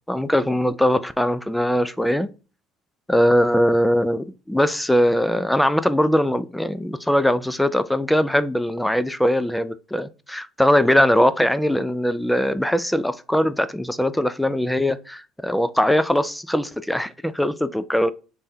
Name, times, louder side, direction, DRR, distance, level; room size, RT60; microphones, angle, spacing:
voice 1, 0.1-2.3 3.1-18.1, equal, 5° left, 0.3 m, -21 dB
5.4 x 3.3 x 2.7 m
cardioid pair, 140°, 0 cm